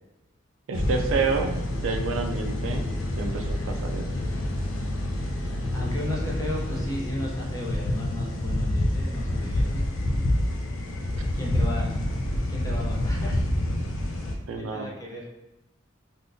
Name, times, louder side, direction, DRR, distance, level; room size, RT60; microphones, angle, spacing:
sound 1, 0.7-14.4, left 1 dB, 80° left, 0.5 m, -28 dB
voice 1, 0.7-2.9 3.2-4.1 14.5-14.9, right 4 dB, 80° right, 5 dB, 0.4 m, -29 dB
voice 2, 5.7-10.0 11.3-11.9 12.5-13.5 14.6-15.3, left 1 dB, 15° left, -3 dB, 0.6 m, -34 dB
3.5 x 2.5 x 2.6 m, 0.98 s
head